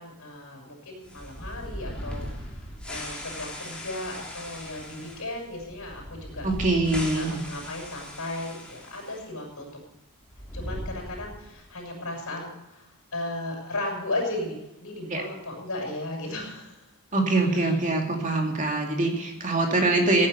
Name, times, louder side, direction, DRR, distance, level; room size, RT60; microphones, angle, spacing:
voice 1, 0.0-6.5 7.1-9.7 10.5-12.9 13.1-16.8 17.1-17.7, left 2 dB, 70° left, 0 dB, 6.3 m, -35 dB
sound 1, 1.0-9.2 9.5-9.6 10.2-11.6, equal, 5° left, 3.1 m, -39 dB
voice 2, 6.4-7.4 15.1-15.2 17.1-20.3, right 2 dB, 35° right, 2 dB, 2.5 m, -24 dB
16.0 x 9.7 x 6.8 m, 0.94 s
head